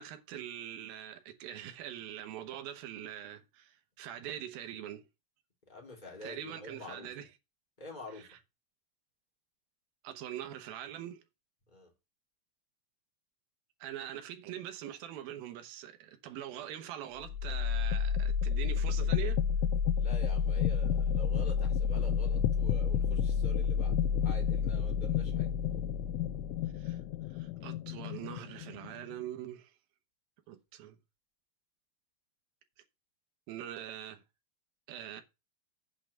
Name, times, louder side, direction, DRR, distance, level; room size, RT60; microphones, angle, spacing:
voice 1, 0.0-5.1 6.2-7.3 8.1-8.4 10.0-11.2 13.8-19.4 26.7-27.0 27.3-29.7 30.5-31.0 33.5-34.2 34.9-35.2, right 11 dB, 75° right, 2.1 m, -43 dB
voice 2, 5.7-7.1 7.8-8.4 11.7-11.9 20.0-25.5, left 2 dB, 15° left, 1.6 m, -47 dB
sound 1, 17.2-29.1, left 7 dB, 85° left, 3.1 m, -30 dB
8.5 x 4.7 x 6.6 m
omnidirectional pair, 5.7 m